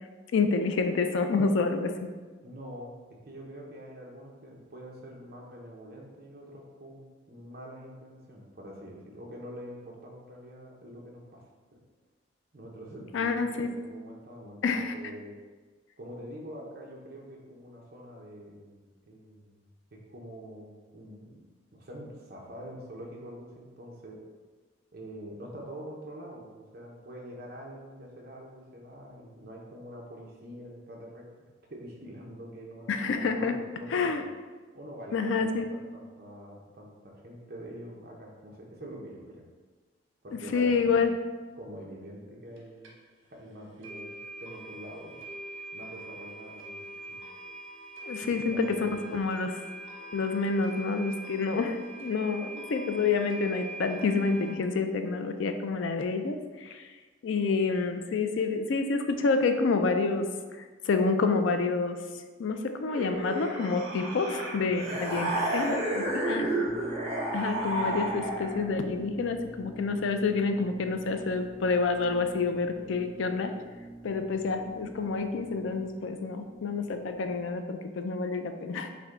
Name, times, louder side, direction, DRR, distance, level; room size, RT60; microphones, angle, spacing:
voice 1, 0.3-2.1 13.1-13.7 14.6-14.9 32.9-33.6 33.9-34.2 35.1-35.7 40.5-41.1 48.0-49.5 50.1-56.9 57.2-60.3 60.9-62.0 62.4-66.7 67.3-73.5 74.0-78.9, left 4 dB, 75° left, 7 dB, 0.4 m, -28 dB
voice 2, 2.4-3.0 3.3-11.4 11.7-11.8 12.5-13.5 13.7-15.4 16.0-19.6 19.9-21.4 21.7-24.2 24.9-31.3 31.7-34.2 34.7-39.4 40.2-41.1 41.6-42.9 43.3-45.2 45.7-46.8 47.1-47.2 48.2-49.1 64.8-66.6, equal, 50° right, -1 dB, 0.8 m, -45 dB
sound 1, 42.6-42.7 42.8-42.9 43.3-43.4 43.8-54.5, right 2 dB, 80° right, 0.9 m, -43 dB
sound 2, 62.9-68.7, right 1 dB, 30° right, 1.1 m, -31 dB
sound 3, 66.6-77.5, right 1 dB, 10° left, 0.5 m, -47 dB
5.8 x 2.2 x 3.7 m, 1.4 s
head